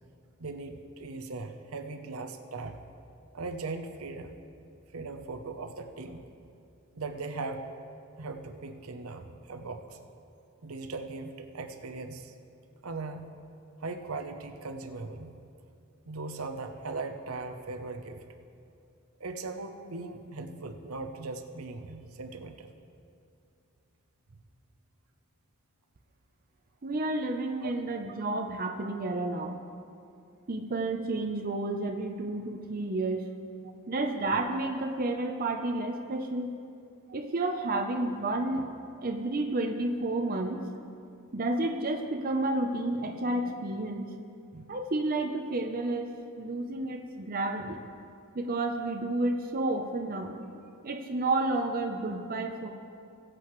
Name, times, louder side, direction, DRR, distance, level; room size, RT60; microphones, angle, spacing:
voice 1, 0.4-2.8 3.3-4.3 4.9-6.2 6.9-7.6 8.2-10.0 10.6-12.3 12.8-13.2 13.8-15.3 16.1-18.2 19.2-22.7 27.6-27.7, right 3 dB, 75° right, 6 dB, 0.8 m, -39 dB
voice 2, 26.8-29.6 30.5-33.3 33.9-36.5 37.1-38.7 39.0-40.6 41.3-44.1 44.5-47.8 48.3-52.7, right 2 dB, 40° right, 3 dB, 0.7 m, -31 dB
21.0 x 7.8 x 3.2 m, 2.5 s
head